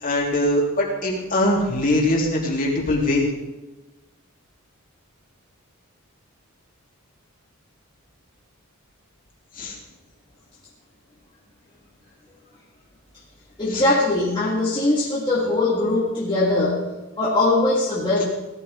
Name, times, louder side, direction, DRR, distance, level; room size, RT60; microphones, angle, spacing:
voice 1, 0.0-3.3 9.6-9.7 13.7-13.8, left 1 dB, 40° left, -3 dB, 3.3 m, -22 dB
voice 2, 13.6-18.2, left 2 dB, 20° left, -7 dB, 1.9 m, -21 dB
18.0 x 13.0 x 3.7 m, 1.1 s
head